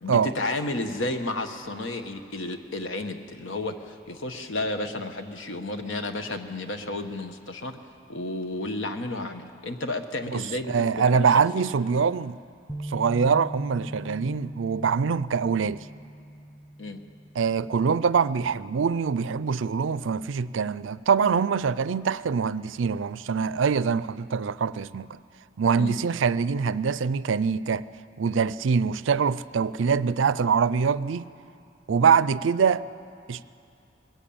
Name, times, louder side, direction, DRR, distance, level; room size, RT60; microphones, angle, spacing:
voice 1, 0.0-7.8 8.1-11.6 16.8-17.0 25.8-25.9, left 2 dB, 75° left, 7 dB, 1.2 m, -32 dB
voice 2, 10.3-12.4 12.8-15.9 17.4-25.1 25.6-27.8 28.2-31.3 31.9-32.8 33.3-33.4, right 6 dB, 75° right, 17 dB, 0.4 m, -24 dB
Bass guitar, 12.7-18.9, right 1 dB, 5° right, 0.4 m, -41 dB
21.0 x 14.0 x 8.7 m, 2.5 s
head